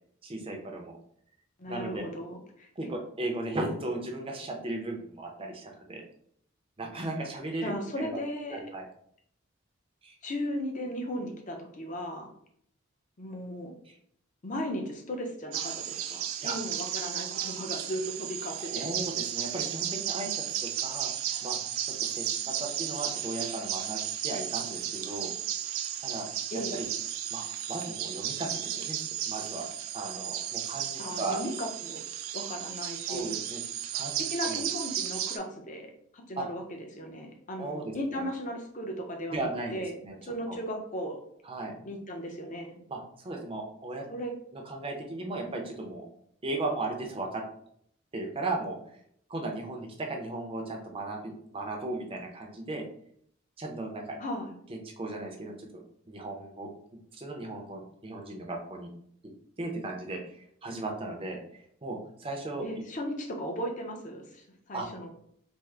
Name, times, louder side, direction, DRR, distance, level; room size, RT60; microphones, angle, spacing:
voice 1, 0.2-1.0 1.7-2.1 2.8-6.0 6.8-8.2 8.5-8.8 10.0-10.2 16.4-16.6 18.6-21.1 21.4-21.6 21.8-25.3 26.0-26.3 26.5-26.9 27.3-27.4 27.7-29.0 29.3-29.7 29.9-31.4 33.1-33.6 33.9-34.6 36.4-36.5 37.6-38.2 39.3-40.2 40.5-40.6 41.4-41.7 42.9-43.0 43.2-44.1 44.5-46.1 46.4-47.4 48.1-48.8 49.3-52.8 53.6-54.2 54.7-55.5 56.1-56.7 57.1-58.9 59.6-60.2 60.6-61.4 61.8-62.7 64.7-64.9, right 2 dB, 25° right, 1 dB, 0.5 m, -36 dB
voice 2, 1.6-2.7 7.6-8.6 10.2-12.3 13.2-13.7 14.4-18.9 26.5-26.8 31.0-32.0 32.3-33.4 34.2-41.2 41.8-42.8 44.1-44.3 54.2-54.5 62.6-65.1, equal, 40° left, 2 dB, 0.6 m, -36 dB
sound 1, 15.5-35.4, right 10 dB, 85° right, 0.3 m, -34 dB
3.5 x 2.0 x 3.2 m, 0.67 s
head